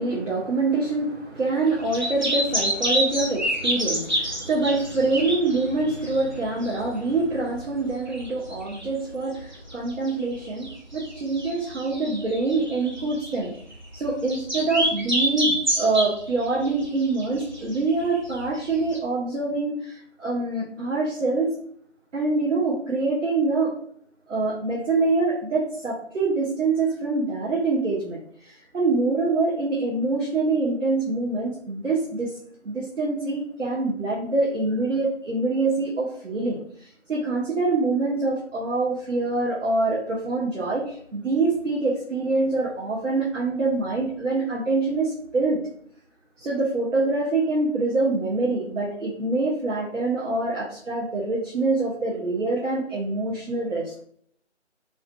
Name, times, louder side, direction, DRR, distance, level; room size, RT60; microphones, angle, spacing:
voice 1, 0.0-13.5 13.9-21.5 22.1-23.8 24.3-32.3 32.6-45.6 46.4-54.0, right 3 dB, 75° right, -4 dB, 0.6 m, -25 dB
sound 1, 1.7-19.0, equal, 40° right, 0.5 m, -29 dB
2.4 x 2.2 x 2.3 m, 0.63 s
figure-of-eight pair, 160°, 37 cm